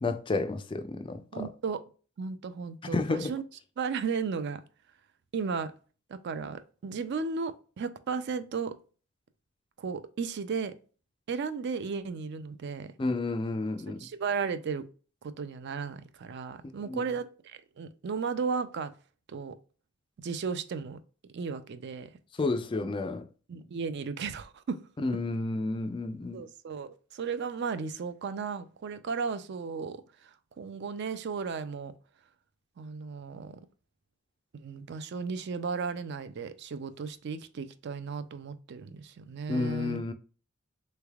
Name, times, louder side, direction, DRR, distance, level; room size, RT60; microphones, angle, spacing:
voice 1, 0.0-1.5 2.9-3.3 13.0-14.1 16.9-17.0 22.4-23.3 25.0-26.4 39.5-40.1, left 3 dB, 25° left, 0.3 m, -31 dB
voice 2, 1.3-1.8 2.2-3.4 3.8-4.6 5.3-5.7 6.1-8.8 9.8-10.7 11.3-12.9 13.9-14.8 15.2-18.9 19.3-19.6 20.2-21.0 21.3-22.1 23.5-24.8 26.3-31.9 32.8-33.6 34.5-40.0, right 5 dB, 50° right, 0.4 m, -35 dB
3.4 x 3.2 x 2.3 m
head